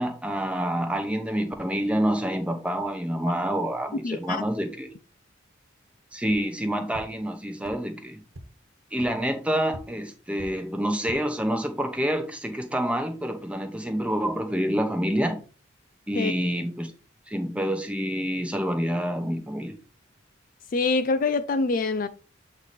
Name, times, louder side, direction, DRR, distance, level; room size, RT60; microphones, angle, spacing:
voice 1, 0.0-4.9 6.1-8.2 8.9-15.4 16.1-16.9 17.3-19.8, equal, 5° right, 0.9 m, -27 dB
voice 2, 4.0-4.4 16.1-16.3 20.7-22.1, left 3 dB, 45° left, 0.4 m, -25 dB
sound 1, 6.2-6.4 6.9-7.0 7.6-7.7 8.3-8.4 9.0-9.1 9.7-9.8 10.3-10.5 10.9-11.2, equal, 90° right, 1.3 m, -41 dB
7.9 x 3.3 x 4.2 m
head